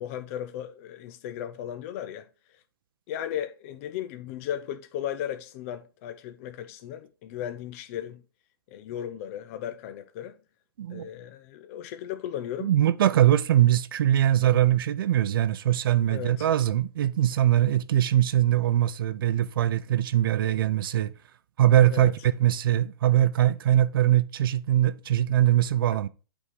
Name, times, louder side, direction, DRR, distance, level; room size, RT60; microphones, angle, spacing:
voice 1, 0.0-2.3 3.1-8.2 8.7-10.4 10.9-12.7 16.1-16.5 21.9-22.1, left 10 dB, 35° left, 0.5 m, -36 dB
voice 2, 10.8-11.1 12.6-21.1 21.6-26.1, right 12 dB, 60° right, 0.5 m, -22 dB
8.3 x 3.7 x 4.6 m
hypercardioid pair, 145°, 13 cm